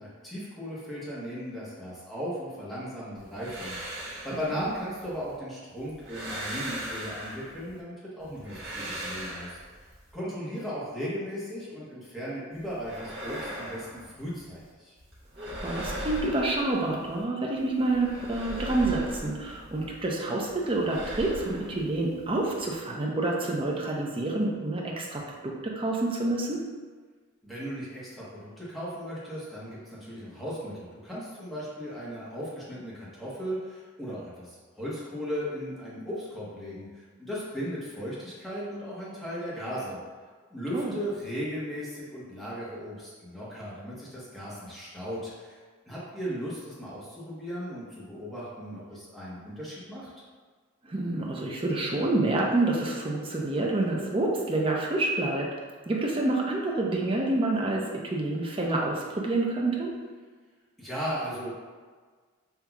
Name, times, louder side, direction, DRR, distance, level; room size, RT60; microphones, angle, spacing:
voice 1, 0.0-9.6 10.1-13.9 14.2-14.9 27.4-40.0 40.5-45.6 45.9-50.1 60.8-61.6, equal, ahead, -9 dB, 1.1 m, -36 dB
sound 1, 3.2-5.4 5.8-7.8 8.2-10.1 12.5-14.7 15.0-17.2 17.6-20.1 20.4-22.8, right 1 dB, 60° right, 1.2 m, -39 dB
voice 2, 15.4-26.6 40.7-40.9 50.8-55.5 55.9-59.9, right 2 dB, 25° right, -1 dB, 0.6 m, -28 dB
5.7 x 2.8 x 2.3 m, 1.5 s
head